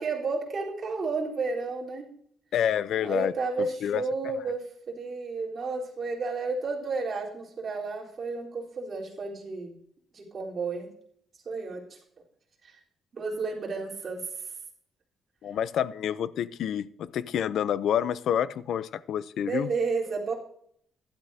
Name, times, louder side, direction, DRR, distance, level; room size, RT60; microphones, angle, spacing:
voice 1, 0.0-2.1 3.0-9.8 10.1-10.9 11.5-12.0 12.6-12.8 13.1-14.5 19.5-20.3, right 4 dB, 40° right, 3.8 m, -32 dB
voice 2, 2.5-3.3 3.8-4.0 15.4-19.7, left 9 dB, 70° left, 0.5 m, -28 dB
15.5 x 11.5 x 2.8 m
cardioid pair, 135°, 0 cm